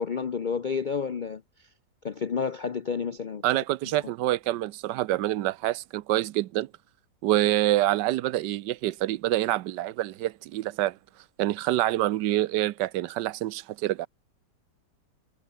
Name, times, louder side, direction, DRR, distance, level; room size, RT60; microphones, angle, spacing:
voice 1, 0.0-1.7 2.0-3.4, left 6 dB, 70° left, 0.4 m, -30 dB
voice 2, 3.4-6.7 7.2-11.0 11.4-14.1, right 15 dB, 85° right, 1.2 m, -26 dB
omnidirectional pair, 1.9 m